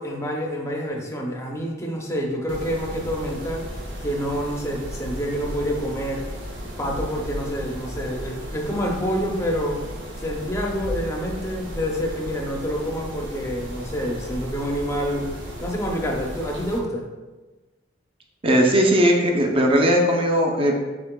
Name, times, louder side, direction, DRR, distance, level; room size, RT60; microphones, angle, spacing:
voice 1, 0.0-3.7 4.0-6.3 6.6-9.8 10.2-15.3 15.6-17.1, equal, 15° left, 0 dB, 0.6 m, -27 dB
Mechanisms, 2.5-16.8, equal, 80° right, 0.9 m, -35 dB
voice 2, 18.4-20.8, equal, 30° right, 1 dB, 0.5 m, -18 dB
5.8 x 3.4 x 2.3 m, 1.2 s
head